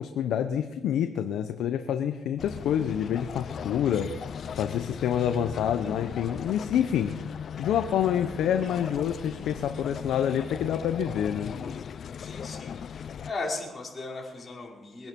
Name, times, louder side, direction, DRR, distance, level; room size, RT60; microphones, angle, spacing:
voice 1, 0.0-4.1 4.5-7.1 7.6-11.5, left 9 dB, 80° left, 7 dB, 0.9 m, -27 dB
sound 1, 2.4-13.3, left 7 dB, 55° left, 0.6 m, -38 dB
voice 2, 12.2-15.1, left 3 dB, 35° left, -2 dB, 5.1 m, -37 dB
22.5 x 10.5 x 5.4 m, 1.1 s
cardioid pair, 90°, 0 cm